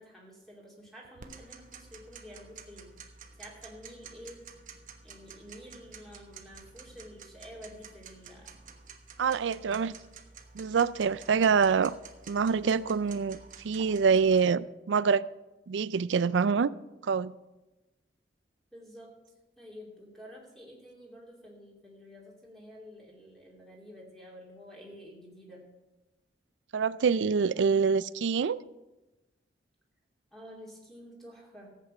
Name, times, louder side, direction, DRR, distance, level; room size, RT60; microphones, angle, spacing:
voice 1, 0.0-2.9 3.4-4.4 5.0-8.5 18.7-19.1 19.6-25.7 30.3-31.7, equal, ahead, 2.7 m, -49 dB
Tick-tock, 1.2-14.4, right 5 dB, 45° right, 1.1 m, -51 dB
voice 2, 9.2-9.9 10.5-12.0 12.3-13.4 13.6-15.2 15.7-16.7 17.0-17.3 26.7-28.6, right 5 dB, 90° right, 0.4 m, -25 dB
14.5 x 8.2 x 5.6 m
head